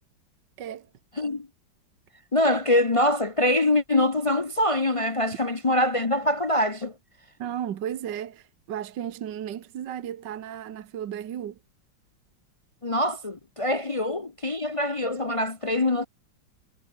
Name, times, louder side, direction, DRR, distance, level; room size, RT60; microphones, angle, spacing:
voice 1, 0.6-0.9 7.4-11.6, right 10 dB, 70° right, 1.8 m, -34 dB
voice 2, 1.2-1.5 2.3-6.9 12.8-16.1, left 1 dB, 45° left, 0.4 m, -24 dB
omnidirectional pair, 2.0 m